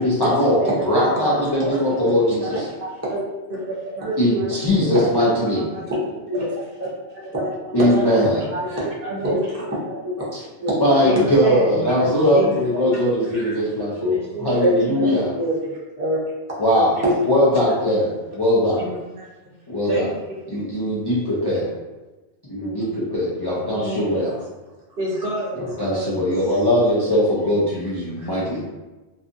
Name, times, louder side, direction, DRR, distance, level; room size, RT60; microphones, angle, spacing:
voice 1, 0.0-2.6 4.2-5.7 7.7-8.4 10.8-15.3 16.6-18.8 19.7-20.1 20.5-21.7 22.5-24.3 25.8-28.6, left 1 dB, 35° left, -9 dB, 0.4 m, -20 dB
voice 2, 0.6-2.1 2.4-2.6 3.5-4.5 4.9-5.1 5.3-5.9 6.3-7.9 8.5-9.6 11.0-12.6 12.9-13.0 13.3-13.6 14.5-15.3 18.7-19.5 19.9-20.1 20.5-20.7 23.7-24.4 24.9-26.2 26.5-26.6 28.2-28.3, right 1 dB, 55° right, -5 dB, 0.8 m, -30 dB
voice 3, 4.0-4.5 4.8-5.1 5.9-6.3 7.3-7.4 7.7-8.3 8.5-8.8 9.2-10.2 10.6-10.8 11.1-11.2 11.9-12.5 14.0-14.7 15.3-15.7 16.0-16.2 17.0-17.1, right 1 dB, 15° right, -7 dB, 0.6 m, -25 dB
2.6 x 2.4 x 2.5 m, 1.1 s
omnidirectional pair, 1.1 m